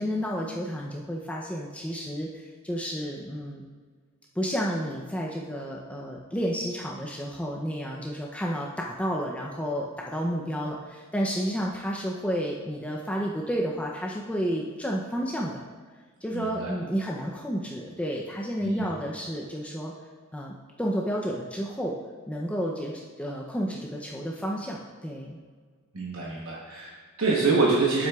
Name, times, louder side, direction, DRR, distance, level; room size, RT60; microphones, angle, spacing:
voice 1, 0.0-3.6 4.4-15.6 16.2-19.9 20.3-22.0 22.3-25.4, equal, 5° left, -2 dB, 0.5 m, -31 dB
voice 2, 16.3-16.7 18.6-18.9 25.9-28.1, right 3 dB, 80° right, -5 dB, 1.1 m, -26 dB
9.0 x 7.4 x 2.4 m, 1.5 s
head